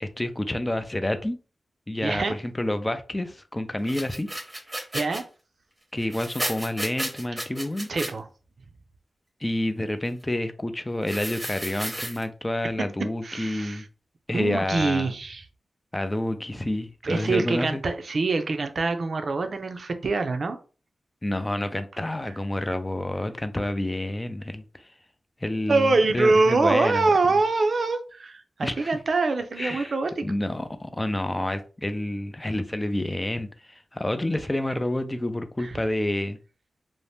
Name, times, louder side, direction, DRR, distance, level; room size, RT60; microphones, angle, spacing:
voice 1, 0.0-1.4 1.9-4.3 5.9-7.9 9.4-13.9 14.3-15.1 15.9-17.8 21.2-24.9 25.4-27.1 28.6-29.0 29.6-29.9 30.2-36.4, left 1 dB, 20° left, 0.4 m, -29 dB
voice 2, 2.0-2.3 4.9-5.2 7.9-8.3 13.2-13.8 14.3-15.4 17.0-20.6 22.3-22.4 25.7-30.3 35.6-35.8, right 3 dB, 65° right, 0.5 m, -24 dB
sound 1, 3.9-5.2 6.0-8.1 11.1-12.2, right 1 dB, 20° right, 0.8 m, -33 dB
2.7 x 2.1 x 3.3 m
cardioid pair, 65°, 0 cm